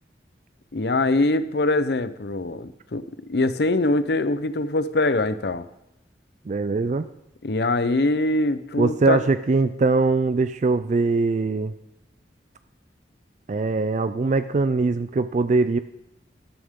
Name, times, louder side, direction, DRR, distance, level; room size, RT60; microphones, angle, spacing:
voice 1, 0.7-5.7 7.4-9.2, left 2 dB, 65° left, 14 dB, 0.7 m, -23 dB
voice 2, 6.5-7.1 8.8-11.7 13.5-15.8, right 3 dB, 40° right, 12 dB, 0.4 m, -22 dB
13.0 x 12.5 x 3.7 m, 0.89 s
head